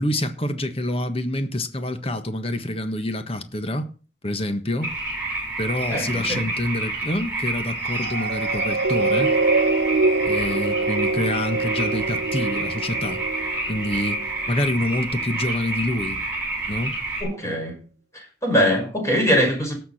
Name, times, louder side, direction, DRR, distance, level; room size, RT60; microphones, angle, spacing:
voice 1, 0.0-3.9 4.2-4.9 5.6-9.3 10.2-13.2 13.7-14.2 14.5-16.2 16.7-16.9, left 1 dB, 35° left, 1.4 m, -27 dB
sound 1, 4.8-17.2, right 2 dB, 10° right, 6.5 m, -29 dB
voice 2, 5.9-6.5 17.2-17.9 18.1-19.8, equal, 15° left, 6.0 m, -22 dB
sound 2, 7.9-14.6 15.2-15.3, right 3 dB, 75° right, 0.6 m, -25 dB
18.0 x 6.9 x 4.3 m
head